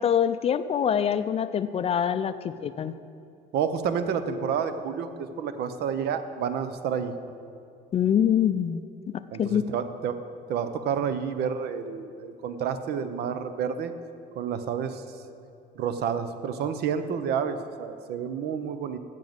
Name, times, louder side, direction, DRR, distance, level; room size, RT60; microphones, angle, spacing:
voice 1, 0.0-2.9 7.9-8.8 9.1-9.6, left 8 dB, 35° left, 13 dB, 0.4 m, -25 dB
voice 2, 3.5-7.2 9.3-10.2 10.5-13.9 14.4-15.0 15.8-19.0, right 7 dB, 70° right, 11 dB, 0.7 m, -29 dB
7.4 x 7.1 x 7.8 m, 2.7 s
cardioid pair, 110°, 17 cm